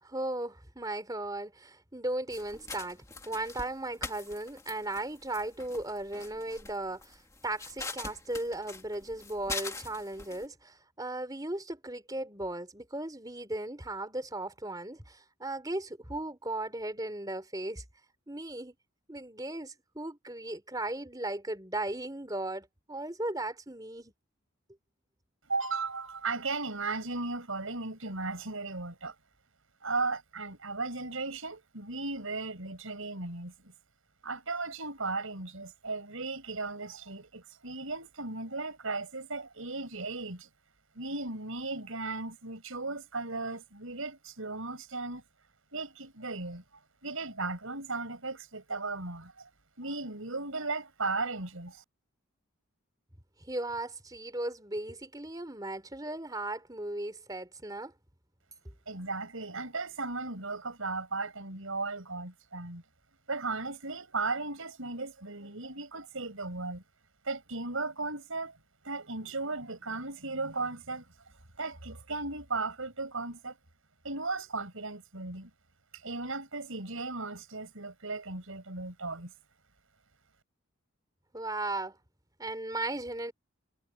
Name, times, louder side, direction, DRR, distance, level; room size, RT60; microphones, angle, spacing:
voice 1, 0.0-17.8 18.3-18.7 19.1-24.1 53.4-57.9 81.3-82.0 82.4-83.3, right 2 dB, 20° right, 3.9 m, -36 dB
sound 1, 2.3-10.5, left 3 dB, 15° left, 2.4 m, -43 dB
voice 2, 25.5-29.1 29.8-33.7 34.2-40.5 41.0-45.2 45.7-46.6 47.0-49.5 49.8-51.8 58.9-62.8 63.3-66.8 67.2-68.6 68.8-71.0 71.6-73.6 74.0-75.5 76.0-79.3, right 3 dB, 90° right, 5.4 m, -36 dB
head